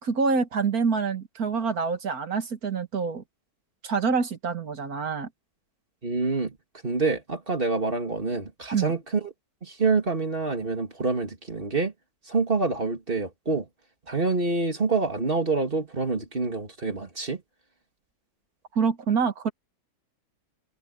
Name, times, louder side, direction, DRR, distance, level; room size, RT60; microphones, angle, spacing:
voice 1, 0.0-3.2 3.8-5.3 8.7-8.9 18.7-19.5, right 5 dB, 60° right, 2.2 m, -26 dB
voice 2, 6.0-6.5 6.8-9.3 9.6-11.9 12.3-13.7 14.1-17.4, right 3 dB, 35° right, 2.5 m, -26 dB
omnidirectional pair, 1.8 m